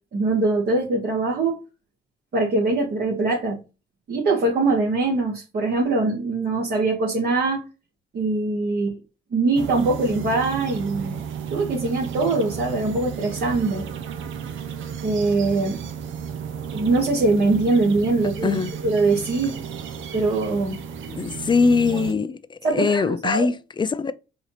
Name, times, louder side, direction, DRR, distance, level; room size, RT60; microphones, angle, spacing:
voice 1, 0.1-1.6 2.3-3.6 4.1-7.6 8.1-9.0 9.3-11.2 11.5-13.9 15.0-15.8 16.7-18.6 18.8-19.6 20.1-20.8 21.9-22.0 22.6-23.5, right 3 dB, 55° right, 1.7 m, -22 dB
sound 1, 9.5-22.1, right 7 dB, 80° right, 0.7 m, -33 dB
voice 2, 21.1-24.1, left 4 dB, 25° left, 0.4 m, -22 dB
4.8 x 2.7 x 3.2 m
cardioid pair, 90°, 20 cm